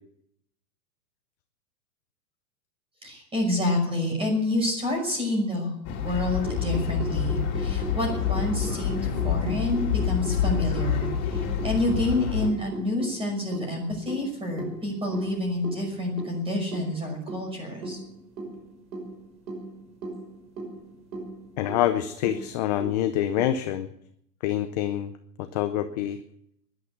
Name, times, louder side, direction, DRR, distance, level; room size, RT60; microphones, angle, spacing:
voice 1, 3.0-18.0, left 1 dB, 10° right, 1 dB, 5.8 m, -28 dB
sound 1, 5.8-12.5, left 9 dB, 45° left, 3.4 m, -27 dB
sound 2, 6.4-23.5, right 3 dB, 80° right, 6.1 m, -38 dB
voice 2, 21.6-23.9 24.4-25.1 25.5-26.2, left 12 dB, 25° left, 9 dB, 0.5 m, -26 dB
15.0 x 11.5 x 8.2 m, 0.75 s
hypercardioid pair, 150°, 48 cm